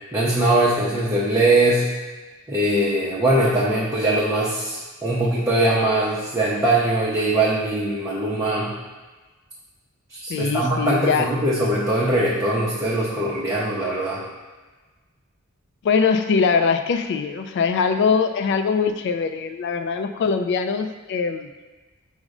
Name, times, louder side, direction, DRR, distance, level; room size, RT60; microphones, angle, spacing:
voice 1, 0.1-1.9 2.5-8.7 10.1-14.2, right 1 dB, 15° right, -7 dB, 0.5 m, -21 dB
voice 2, 10.3-11.3 15.8-21.5, left 5 dB, 55° left, 8 dB, 0.3 m, -22 dB
5.0 x 2.1 x 4.8 m, 1.3 s
head